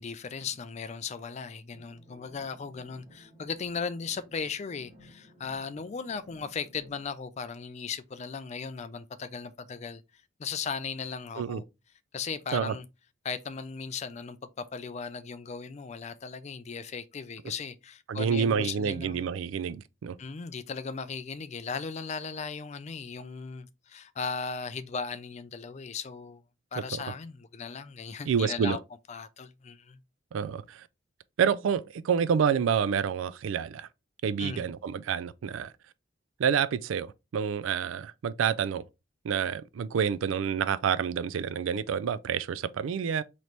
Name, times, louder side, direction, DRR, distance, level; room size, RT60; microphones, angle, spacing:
voice 1, 0.0-10.0 10.4-11.6 12.1-12.8 13.2-19.2 20.2-26.4 26.7-28.8 29.1-30.0 34.4-34.7, left 5 dB, 35° left, 0.3 m, -37 dB
sound 1, 1.7-7.1, left 1 dB, 20° right, 2.1 m, -56 dB
voice 2, 18.1-20.2 26.9-27.0 28.2-28.8 30.3-30.9 31.4-33.9 34.2-35.7 36.4-38.8 39.2-43.2, right 7 dB, 75° right, 0.3 m, -28 dB
4.1 x 3.0 x 3.2 m
head